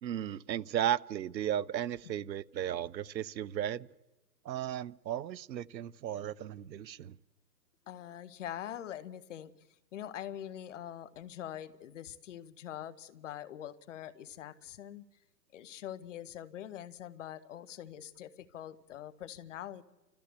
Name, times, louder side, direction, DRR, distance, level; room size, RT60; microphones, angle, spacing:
voice 1, 0.0-3.9 4.4-7.2, right 10 dB, 90° right, 0.7 m, -35 dB
voice 2, 7.9-15.0 15.5-19.8, left 11 dB, 45° left, 1.0 m, -44 dB
29.0 x 13.5 x 8.2 m
hypercardioid pair, 150°, 50 cm